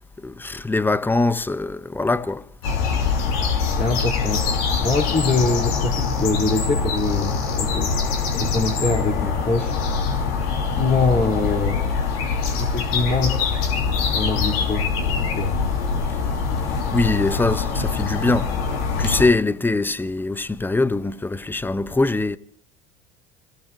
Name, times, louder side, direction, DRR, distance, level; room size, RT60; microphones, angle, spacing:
voice 1, 0.2-2.5 16.9-18.5 19.0-22.4, left 3 dB, 5° left, 0.7 m, -22 dB
sound 1, 2.6-19.3, left 5 dB, 80° left, 3.3 m, -23 dB
voice 2, 3.8-4.4 4.8-7.9 8.3-9.7 10.8-11.8 12.6-13.4 14.0-15.5, left 3 dB, 25° left, 3.3 m, -24 dB
27.5 x 17.0 x 2.7 m
hypercardioid pair, 85°, 30 cm